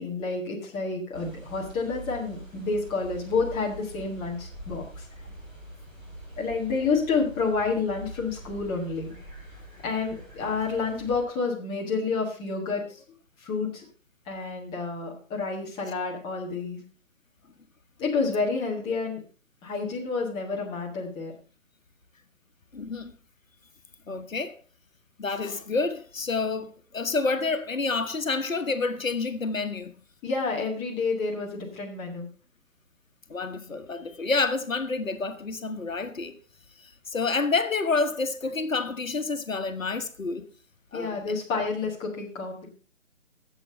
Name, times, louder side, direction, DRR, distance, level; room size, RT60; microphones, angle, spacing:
voice 1, 0.0-5.1 6.4-9.2 9.8-13.0 13.4-13.8 14.2-16.8 18.0-19.2 19.6-21.3 30.2-32.3 40.9-42.7, left 4 dB, 10° left, 1.4 m, -29 dB
sound 1, 1.1-11.2, right 1 dB, 10° right, 4.0 m, -44 dB
voice 2, 22.7-23.1 24.1-24.6 25.2-29.9 33.3-36.3 36.8-40.5 40.9-41.2, left 4 dB, 75° left, 1.3 m, -28 dB
11.0 x 7.7 x 5.1 m
figure-of-eight pair, 145°, 40 cm